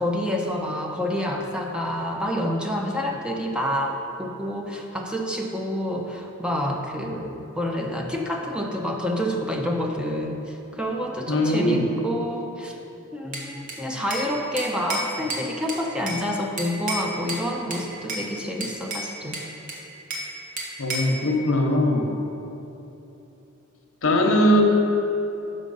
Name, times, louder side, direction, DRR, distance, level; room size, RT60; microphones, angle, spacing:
voice 1, 0.0-12.8 13.1-19.4, equal, 5° right, 0 dB, 0.5 m, -28 dB
voice 2, 11.3-11.9 20.8-22.1 24.0-24.6, equal, 65° left, 1 dB, 0.9 m, -20 dB
Bell / Glass, 13.3-14.3 14.6-16.2 16.6-17.4 17.7-18.3 18.6-20.3 20.6-21.2, right 1 dB, 40° right, 1.1 m, -31 dB
6.3 x 5.5 x 5.3 m, 3.0 s
head